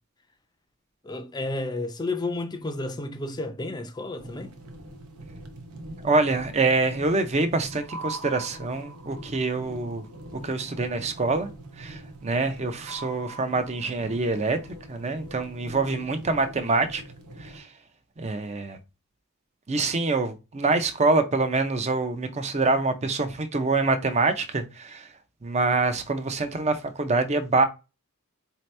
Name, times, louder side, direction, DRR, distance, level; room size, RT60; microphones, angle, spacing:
voice 1, 1.0-4.5, left 2 dB, 20° left, 0.5 m, -31 dB
sound 1, 4.2-17.6, right 2 dB, 80° right, 0.8 m, -42 dB
voice 2, 6.0-10.1 10.4-11.5 11.8-14.6 14.9-17.0 17.4-17.7 18.2-18.8 19.7-25.1 25.4-27.6, right 3 dB, 30° right, 0.5 m, -25 dB
4.2 x 2.8 x 3.2 m
head